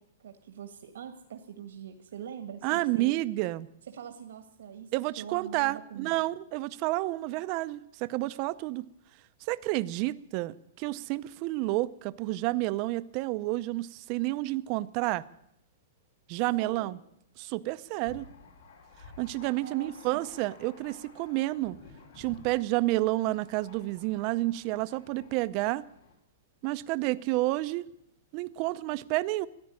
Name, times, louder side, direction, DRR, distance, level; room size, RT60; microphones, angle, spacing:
voice 1, 0.2-3.1 3.9-6.2 16.5-17.0 19.5-20.2, right 8 dB, 85° right, 1.6 m, -43 dB
voice 2, 2.6-3.7 4.9-8.9 9.5-15.2 16.3-17.0 17.4-18.2 19.2-21.8 22.2-25.9 26.6-27.9 28.3-29.5, right 19 dB, 35° right, 0.5 m, -30 dB
Thunder, 18.0-26.1, left 3 dB, 80° left, 5.0 m, -53 dB
14.0 x 10.5 x 9.7 m
hypercardioid pair, 165°, 0 cm